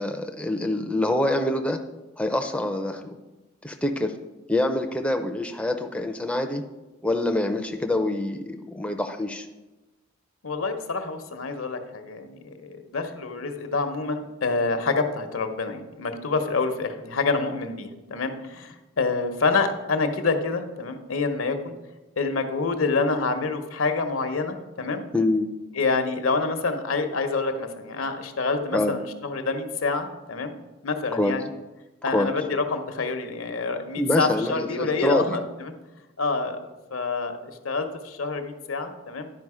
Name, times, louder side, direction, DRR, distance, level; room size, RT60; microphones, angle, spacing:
voice 1, 0.0-1.8 2.2-3.2 3.6-4.1 4.5-6.6 7.0-9.5 25.1-25.5 28.7-28.9 31.1-31.4 32.1-32.3 34.0-35.4, left 1 dB, 5° left, 4 dB, 0.4 m, -25 dB
voice 2, 10.4-21.7 22.2-25.0 25.7-30.5 30.8-31.5 32.0-35.7 36.2-36.6 36.9-37.4 37.6-39.3, left 4 dB, 75° left, 7 dB, 0.8 m, -27 dB
10.5 x 4.9 x 4.8 m, 1.1 s
head